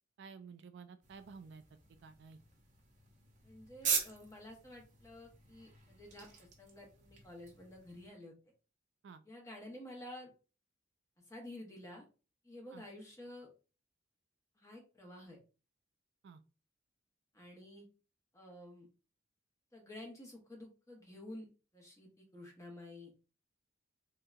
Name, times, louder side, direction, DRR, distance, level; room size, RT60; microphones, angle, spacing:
voice 1, 0.2-1.6 1.9-2.4 9.0-9.2 12.7-12.8 16.2-16.4, right 5 dB, 65° right, 10 dB, 0.3 m, -52 dB
sound 1, 1.0-8.1, right 6 dB, 40° right, 0.7 m, -42 dB
voice 2, 3.4-8.3 9.2-10.3 11.3-12.1 12.4-13.5 14.6-15.4 17.3-17.8 18.3-18.9 19.7-21.5 21.7-23.1, left 1 dB, 15° left, -1 dB, 1.0 m, -51 dB
3.7 x 2.8 x 2.2 m, 0.33 s
head